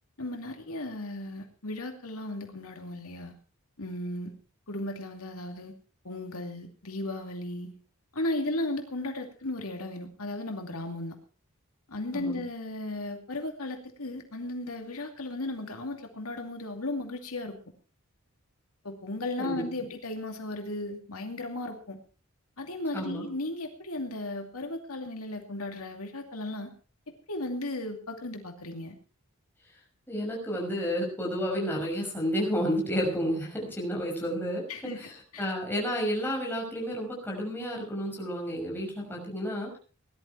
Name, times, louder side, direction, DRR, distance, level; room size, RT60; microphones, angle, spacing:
voice 1, 0.2-3.3 3.8-4.3 4.7-5.7 6.0-7.7 8.1-11.2 11.9-17.6 18.8-22.0 22.6-26.7 27.3-29.0 34.7-35.0 35.3-35.4, left 2 dB, 80° left, 4 dB, 2.6 m, -35 dB
voice 2, 22.9-23.2 30.1-34.6 34.9-39.7, equal, 10° left, -2 dB, 6.1 m, -31 dB
19.0 x 11.5 x 4.6 m, 0.37 s
head